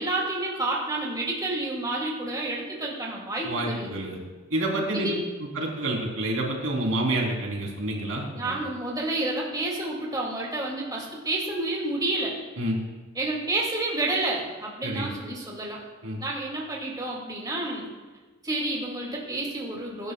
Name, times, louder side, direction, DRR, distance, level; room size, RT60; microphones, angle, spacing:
voice 1, 0.0-3.9 4.9-5.2 8.3-12.4 13.2-15.8 16.2-17.9 18.4-20.1, right 2 dB, 20° right, -3 dB, 2.3 m, -29 dB
voice 2, 3.4-4.2 4.5-5.1 5.5-8.6 12.6-12.8 14.8-15.1 16.0-16.2, right 1 dB, 75° right, -2 dB, 3.4 m, -28 dB
22.5 x 11.0 x 2.3 m, 1.3 s
head